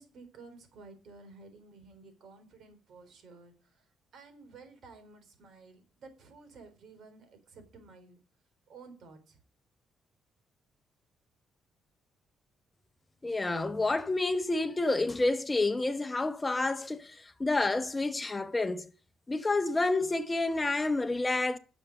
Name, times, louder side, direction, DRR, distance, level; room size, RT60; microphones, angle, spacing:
voice 1, 0.0-8.2 8.7-9.4, right 4 dB, 70° right, 4.2 m, -53 dB
voice 2, 13.2-18.9 19.3-21.6, left 2 dB, 20° left, 0.8 m, -29 dB
10.5 x 7.1 x 8.5 m
cardioid pair, 90°, 0 cm